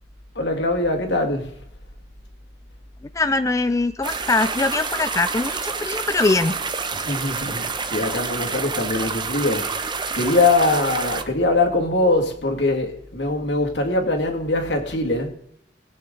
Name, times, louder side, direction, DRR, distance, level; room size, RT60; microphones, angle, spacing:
voice 1, 0.3-1.6 6.9-15.3, left 2 dB, 70° left, 2.3 m, -22 dB
voice 2, 3.1-6.6, left 3 dB, 20° left, 0.4 m, -22 dB
sound 1, 4.0-11.2, right 5 dB, 25° right, 0.9 m, -28 dB
21.0 x 8.5 x 3.9 m
head